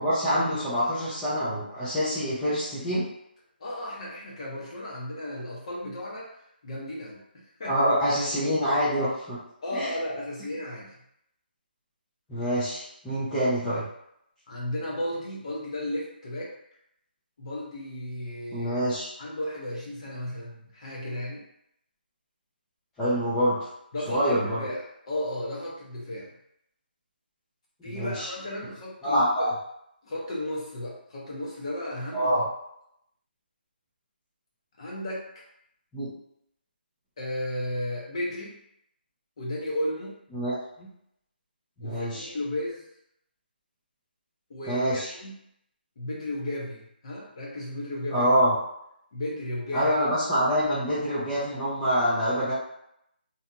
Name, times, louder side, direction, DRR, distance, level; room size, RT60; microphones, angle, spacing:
voice 1, 0.0-3.0 7.6-9.4 9.7-9.9 12.3-13.8 18.5-19.1 23.0-23.7 24.1-24.6 27.9-28.3 29.0-29.5 32.1-32.5 35.9-36.1 40.3-40.9 41.8-42.3 44.7-45.1 48.1-48.5 49.7-52.5, equal, 5° left, -13 dB, 0.4 m, -26 dB
voice 2, 3.6-6.4 6.6-7.9 9.6-10.9 14.5-16.5 17.4-18.8 19.2-21.4 23.9-26.3 27.8-29.5 30.0-32.3 34.8-35.2 37.2-38.6 39.4-40.1 41.8-42.8 44.5-45.3 46.0-48.3 49.1-49.9, left 1 dB, 35° left, -3 dB, 0.7 m, -34 dB
2.7 x 2.6 x 2.2 m, 0.75 s
hypercardioid pair, 170°, 6 cm